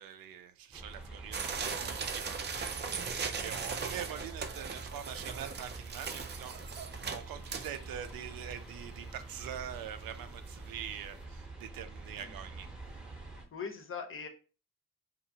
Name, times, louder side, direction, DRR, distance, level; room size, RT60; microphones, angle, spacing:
voice 1, 0.0-12.7, right 9 dB, 85° right, 0.5 m, -44 dB
sound 1, 0.7-13.5, right 2 dB, ahead, 0.7 m, -47 dB
sound 2, 1.3-8.1 8.6-8.7 8.9-9.0 9.5-9.8 10.2-10.3 10.6-10.7, right 5 dB, 30° right, 0.4 m, -38 dB
voice 2, 13.5-14.3, left 6 dB, 40° left, 0.6 m, -41 dB
2.8 x 2.5 x 2.7 m
cardioid pair, 110°, 34 cm